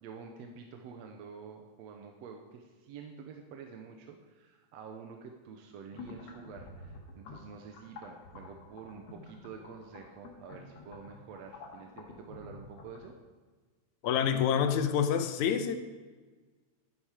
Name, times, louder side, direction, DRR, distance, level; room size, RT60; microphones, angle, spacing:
voice 1, 0.0-13.2, right 6 dB, 70° right, 4 dB, 2.0 m, -48 dB
sound 1, 5.9-13.1, left 3 dB, 60° left, 2.6 m, -50 dB
voice 2, 14.0-15.8, left 8 dB, 80° left, 9 dB, 2.2 m, -27 dB
12.0 x 10.5 x 5.0 m, 1.3 s
omnidirectional pair, 3.4 m